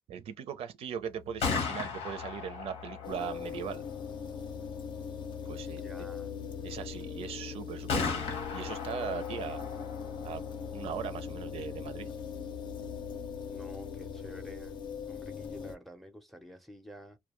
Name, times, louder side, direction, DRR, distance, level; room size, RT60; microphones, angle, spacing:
voice 1, 0.1-3.8 5.5-5.8 6.6-9.6 10.2-10.4 10.7-12.1, right 8 dB, 80° right, 0.5 m, -39 dB
Gunshot gunfire, 1.2-15.0, left 5 dB, 90° left, 0.9 m, -39 dB
sound 1, 3.0-15.7, left 6 dB, 55° left, 0.6 m, -41 dB
voice 2, 5.7-6.4 13.5-14.8 15.1-17.2, equal, ahead, 0.5 m, -50 dB
2.2 x 2.2 x 2.9 m
cardioid pair, 135°, 10 cm